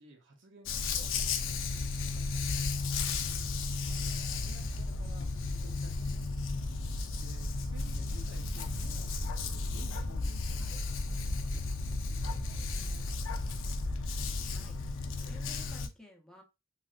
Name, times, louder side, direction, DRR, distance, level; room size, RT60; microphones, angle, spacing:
voice 1, 0.0-13.5, right 2 dB, 65° right, 1 dB, 0.8 m, -56 dB
Dog, 0.7-15.9, left 4 dB, 70° left, 0.4 m, -35 dB
sound 1, 1.7-14.6, left 1 dB, 90° right, 1.8 m, -39 dB
voice 2, 14.5-16.4, left 1 dB, 5° left, 0 dB, 0.7 m, -56 dB
3.2 x 2.6 x 2.4 m, 0.26 s
head